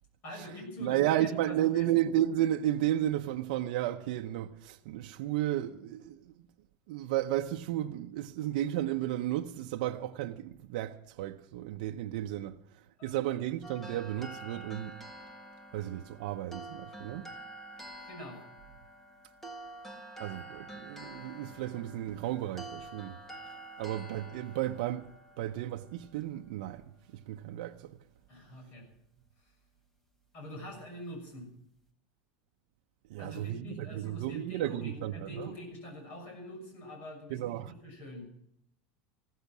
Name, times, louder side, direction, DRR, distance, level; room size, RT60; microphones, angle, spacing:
voice 1, 0.2-1.9 13.0-13.2 18.1-18.4 28.3-28.9 30.3-31.5 33.2-38.3, left 1 dB, 40° left, 6.5 m, -45 dB
voice 2, 0.8-6.3 6.9-12.6 13.0-15.0 15.7-17.3 20.2-23.2 23.8-26.8 27.1-28.0 33.1-35.5 37.3-37.7, right 13 dB, 70° right, 0.7 m, -33 dB
sound 1, 13.6-26.9, right 1 dB, 5° left, 1.5 m, -48 dB
15.5 x 14.0 x 6.1 m
supercardioid pair, 170°, 5 cm